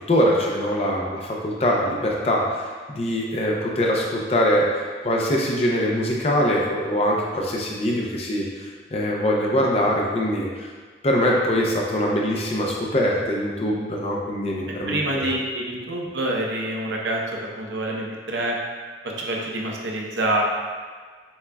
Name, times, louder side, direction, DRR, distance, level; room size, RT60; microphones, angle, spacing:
voice 1, 0.1-4.7 5.0-10.7 11.0-15.2, equal, 35° left, -2 dB, 0.5 m, -23 dB
voice 2, 14.9-18.6 19.0-20.4, right 1 dB, 80° right, -1 dB, 0.6 m, -26 dB
7.0 x 2.4 x 2.2 m, 1.5 s
head